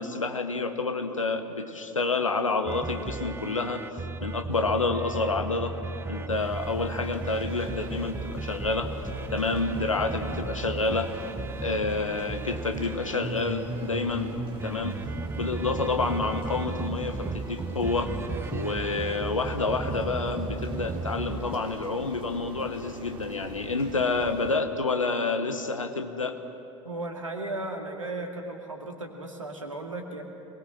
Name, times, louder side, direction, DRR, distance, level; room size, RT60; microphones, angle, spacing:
voice 1, 0.0-3.8 4.2-5.7 6.1-8.9 9.3-11.1 11.6-14.3 14.6-15.0 15.4-18.1 18.5-26.4, left 3 dB, 85° left, 7 dB, 1.4 m, -28 dB
sound 1, 2.7-21.6, right 3 dB, 15° right, 0.8 m, -35 dB
sound 2, 6.3-24.6, right 3 dB, 35° right, 3.6 m, -43 dB
voice 2, 26.8-30.2, right 2 dB, 85° right, 2 dB, 2.4 m, -35 dB
26.5 x 21.0 x 6.1 m, 2.9 s
figure-of-eight pair, 75°, 16 cm